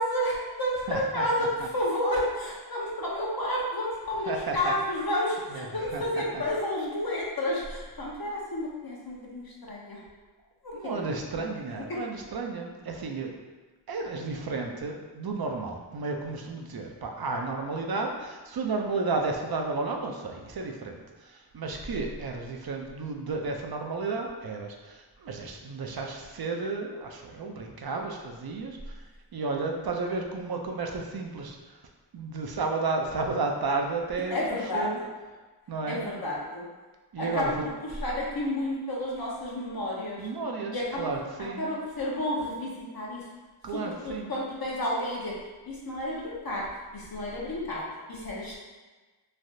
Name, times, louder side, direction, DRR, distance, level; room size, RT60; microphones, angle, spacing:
voice 1, 0.0-10.0 10.6-11.1 11.7-12.0 34.3-35.1 35.9-36.7 37.2-37.5 38.0-40.3 40.7-41.1 41.4-43.3 43.7-45.4 45.7-48.6, left 1 dB, 55° left, -4 dB, 0.7 m, -31 dB
voice 2, 0.9-1.3 4.3-4.7 5.5-6.4 10.7-13.4 13.9-29.0 29.3-31.8 32.1-34.4 34.7-35.0 35.7-36.1 37.1-37.6 40.2-41.7 43.6-44.3, right 3 dB, 55° right, 2 dB, 0.5 m, -32 dB
3.2 x 2.4 x 2.6 m, 1.3 s
wide cardioid pair, 45°, 44 cm